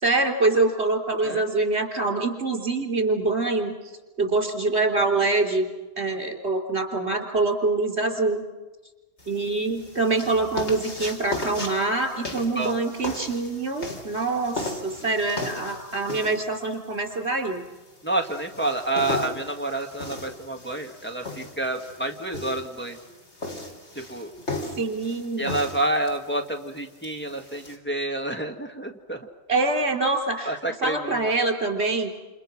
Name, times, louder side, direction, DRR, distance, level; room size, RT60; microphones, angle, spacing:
voice 1, 0.0-3.8 4.2-5.7 6.0-8.4 9.3-17.7 24.8-25.5 29.5-32.1, right 3 dB, 70° right, 4 dB, 3.7 m, -25 dB
sound 1, 9.2-27.8, left 2 dB, 85° left, 4.1 m, -37 dB
voice 2, 18.0-23.0 24.0-24.3 25.4-29.2 30.5-31.2, right 2 dB, 10° left, 3 dB, 1.9 m, -28 dB
29.0 x 28.5 x 6.1 m, 1.2 s
omnidirectional pair, 1.1 m